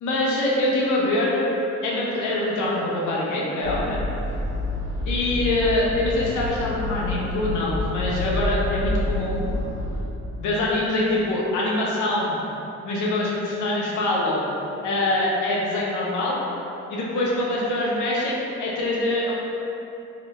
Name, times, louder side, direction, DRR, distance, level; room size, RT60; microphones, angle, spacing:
voice 1, 0.0-1.5 1.8-4.0 5.1-9.4 10.4-12.3 12.8-14.4 14.8-16.4 16.9-19.3, left 1 dB, 80° left, -5 dB, 0.6 m, -24 dB
sound 1, 3.6-10.0, left 1 dB, 75° right, 0.7 m, -28 dB
2.8 x 2.1 x 2.9 m, 2.9 s
cardioid pair, 90°, 30 cm